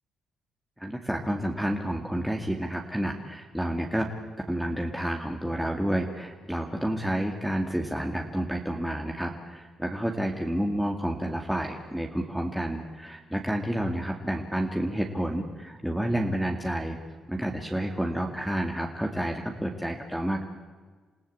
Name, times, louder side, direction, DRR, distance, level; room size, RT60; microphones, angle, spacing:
voice 1, 0.8-4.1 4.5-17.0 17.3-20.4, right 1 dB, ahead, 1 dB, 2.3 m, -30 dB
28.0 x 16.5 x 8.5 m, 1.5 s
cardioid pair, 90°, 0 cm